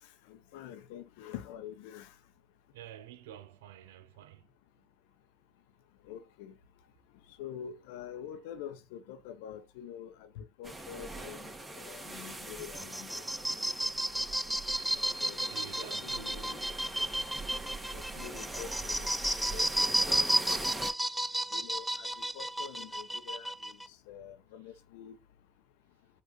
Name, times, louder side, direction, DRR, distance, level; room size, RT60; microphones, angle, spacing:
voice 1, 0.3-2.1 6.1-6.5 7.4-13.2 15.2-16.6 18.1-19.1 19.5-20.3 21.5-23.7 24.1-25.2, left 9 dB, 80° left, 0.7 m, -46 dB
voice 2, 2.7-4.4 15.2-16.3, right 10 dB, 90° right, 0.4 m, -49 dB
sound 1, 10.6-20.9, right 2 dB, 20° right, 1.7 m, -43 dB
sound 2, 12.6-23.9, right 1 dB, 5° right, 0.4 m, -32 dB
5.2 x 2.5 x 3.8 m
hypercardioid pair, 65°, 0 cm